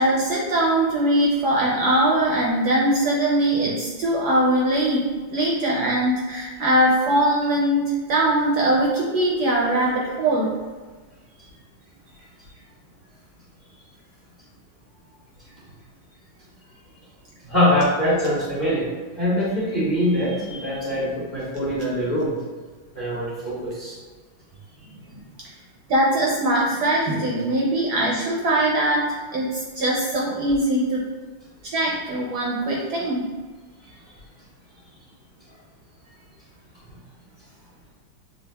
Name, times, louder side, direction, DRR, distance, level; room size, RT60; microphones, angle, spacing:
voice 1, 0.0-10.5 25.1-25.2 25.9-31.1 31.7-33.2, right 1 dB, 70° right, -4 dB, 1.0 m, -21 dB
voice 2, 17.4-18.9 19.2-22.3 22.9-23.9, equal, 25° left, -10 dB, 1.1 m, -23 dB
6.2 x 2.4 x 2.2 m, 1.3 s
omnidirectional pair, 2.2 m